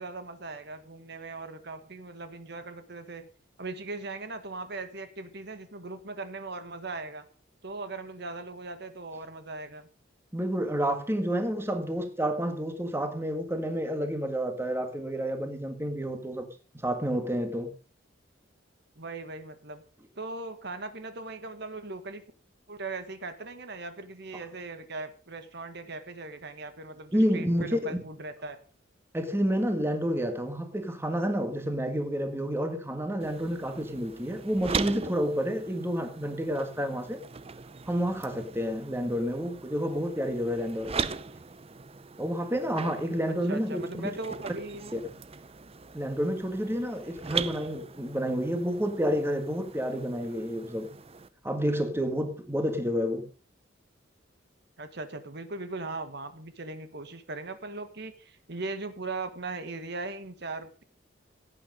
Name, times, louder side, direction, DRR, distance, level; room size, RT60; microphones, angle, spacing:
voice 1, 0.0-3.3 3.6-7.2 7.6-9.9 19.0-19.8 20.2-22.2 22.7-28.6 43.5-44.9 54.8-60.8, right 3 dB, 60° right, 1.6 m, -39 dB
voice 2, 10.3-16.5 16.8-17.7 27.1-28.0 29.1-37.2 37.9-40.9 42.2-44.1 44.9-45.0 45.9-50.9 51.4-53.3, equal, 15° right, 1.8 m, -29 dB
sound 1, 33.2-51.3, right 5 dB, 30° right, 0.6 m, -40 dB
16.5 x 8.8 x 5.2 m
head